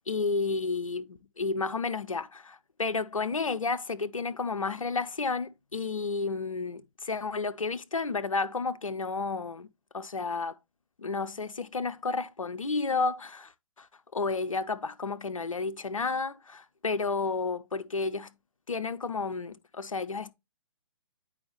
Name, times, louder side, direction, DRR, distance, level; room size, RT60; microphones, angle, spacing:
voice 1, 0.1-9.7 9.9-10.6 11.0-13.5 13.8-13.9 14.1-18.3 18.7-20.3, left 4 dB, 75° left, 0.6 m, -31 dB
8.6 x 4.8 x 3.0 m
figure-of-eight pair, 130°, 17 cm